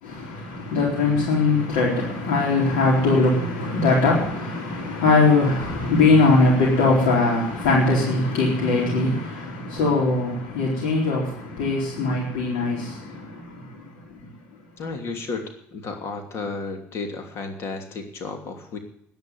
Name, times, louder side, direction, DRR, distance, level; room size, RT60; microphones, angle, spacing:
voice 1, 0.0-14.3, left 3 dB, 90° left, 4.2 m, -21 dB
voice 2, 14.8-15.4 15.7-18.8, left 4 dB, 55° left, 2.9 m, -32 dB
10.5 x 10.5 x 9.3 m
cardioid pair, 100°, 5 cm